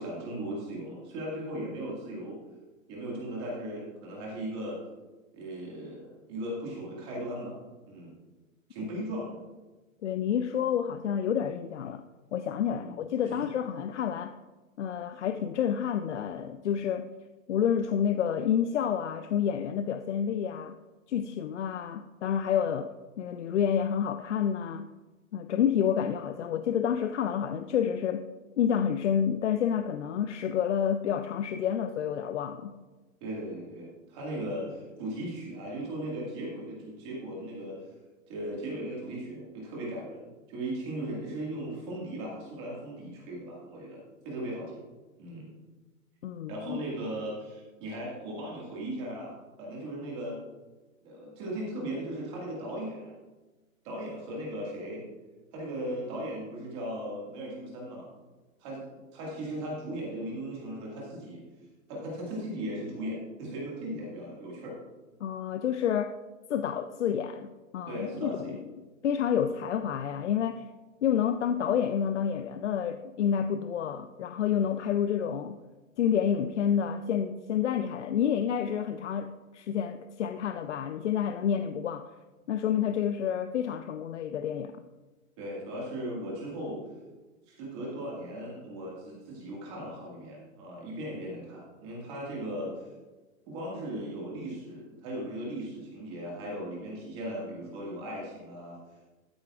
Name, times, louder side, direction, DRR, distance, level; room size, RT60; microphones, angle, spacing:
voice 1, 0.0-2.4 2.9-4.8 5.3-7.6 7.9-8.1 8.7-9.4 12.7-12.9 13.2-13.4 33.2-37.8 38.3-44.8 45.2-45.5 46.5-49.3 49.6-50.4 51.0-53.1 53.8-55.0 55.5-58.1 58.6-61.4 61.9-64.7 67.9-68.6 85.4-86.8 87.5-92.9 93.5-98.8, right 1 dB, 20° right, -4 dB, 1.9 m, -37 dB
voice 2, 10.0-12.0 12.3-14.4 14.8-17.1 17.5-20.8 21.1-22.9 23.2-24.9 25.3-28.3 28.6-32.8 46.2-46.8 65.2-66.2 66.5-70.6 71.0-75.6 76.0-82.1 82.5-84.7, left 8 dB, 60° left, 9 dB, 0.5 m, -29 dB
13.5 x 8.3 x 2.4 m, 1.2 s
hypercardioid pair, 180°, 41 cm